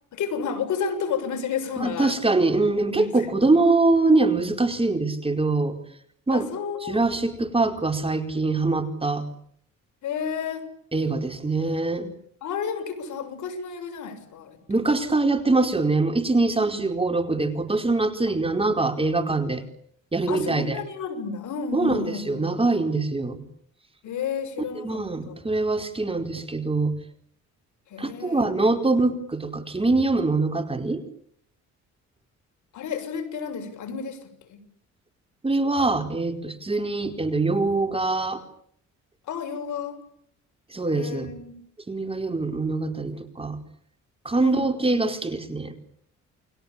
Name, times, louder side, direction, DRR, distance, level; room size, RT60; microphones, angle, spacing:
voice 1, 0.1-2.2 2.8-3.1 6.3-7.0 10.0-10.7 12.4-14.6 16.6-16.8 20.3-22.4 24.0-25.4 27.9-28.7 32.7-34.6 39.2-40.0 40.9-41.6 44.4-44.6, left 6 dB, 75° left, 8 dB, 6.9 m, -31 dB
voice 2, 1.8-5.8 6.3-6.5 6.9-9.3 10.9-12.2 14.7-19.6 20.1-20.7 21.7-23.4 24.6-26.9 28.0-31.0 35.4-38.4 40.7-41.3 41.9-43.6 44.2-45.7, right 3 dB, 20° right, 5 dB, 4.6 m, -23 dB
29.5 x 22.5 x 8.7 m, 0.69 s
cardioid pair, 90°, 30 cm